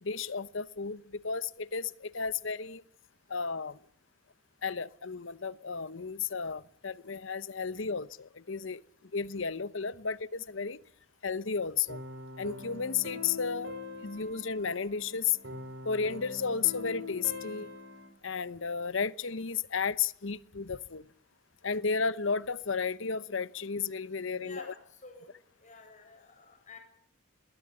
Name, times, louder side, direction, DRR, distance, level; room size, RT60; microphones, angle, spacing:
voice 1, 0.0-2.8 3.3-3.8 4.6-8.8 9.1-10.8 11.2-12.0 12.4-13.8 14.0-15.4 15.8-17.7 18.2-21.0 21.6-24.7, left 5 dB, 70° left, 0.9 m, -33 dB
sound 1, 11.9-18.1, left 3 dB, 60° right, 4.7 m, -43 dB
voice 2, 24.4-25.3 25.6-26.8, left 3 dB, 35° left, 7.5 m, -51 dB
21.0 x 19.0 x 9.9 m
head